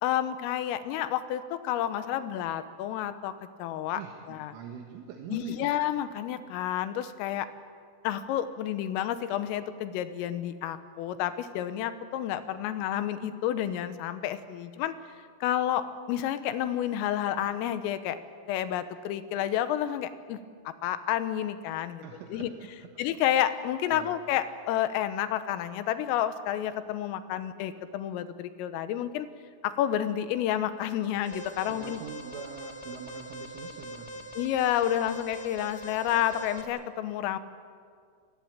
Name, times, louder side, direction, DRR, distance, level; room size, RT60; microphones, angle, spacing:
voice 1, 0.0-3.3 3.6-4.0 4.3-4.5 5.3-7.5 8.1-15.0 15.4-18.2 18.5-20.4 20.8-22.0 22.3-22.5 23.0-29.3 29.6-32.0 34.4-37.4, left 11 dB, 90° left, 12 dB, 3.6 m, -30 dB
voice 2, 3.9-5.7 22.0-22.9 23.4-23.5 23.9-24.1 31.7-34.3, right 7 dB, 75° right, 3 dB, 3.8 m, -44 dB
Alarm, 31.2-36.6, equal, 60° left, 0.9 m, -42 dB
27.5 x 19.5 x 8.9 m, 2.1 s
omnidirectional pair, 6.0 m